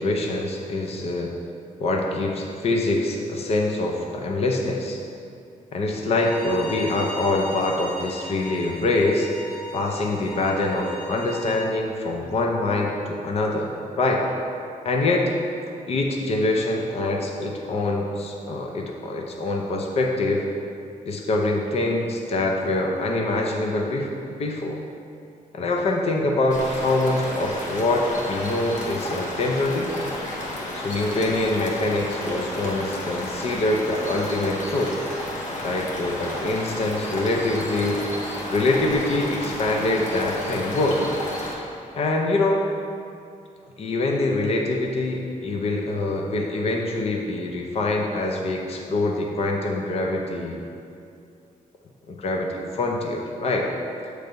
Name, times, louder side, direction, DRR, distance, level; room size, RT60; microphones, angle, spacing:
voice 1, 0.0-1.3 1.8-5.0 5.7-9.3 9.7-14.2 14.8-15.2 15.9-20.5 21.1-24.1 24.4-24.8 25.5-29.9 30.7-35.0 35.6-38.0 38.5-41.1 41.9-42.6 43.8-50.6 52.1-53.7, left 2 dB, 45° left, 1 dB, 0.6 m, -24 dB
Bowed string instrument, 6.1-11.7, equal, 10° left, 1.2 m, -38 dB
sound 1, 26.5-41.5, left 1 dB, 60° left, 1.1 m, -32 dB
7.9 x 3.2 x 5.1 m, 2.5 s
wide cardioid pair, 160°, 14 cm